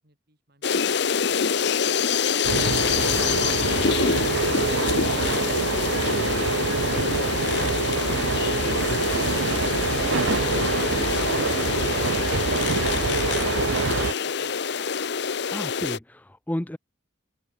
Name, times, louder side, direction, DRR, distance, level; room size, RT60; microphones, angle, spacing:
voice 1, 0.0-2.4, right 1 dB, 50° right, 6.9 m, -58 dB
sound 1, 0.6-16.0, left 6 dB, 60° left, 0.7 m, -26 dB
sound 2, 2.4-14.1, right 4 dB, 80° right, 0.7 m, -26 dB
voice 2, 15.5-16.8, left 1 dB, 10° left, 0.5 m, -32 dB
head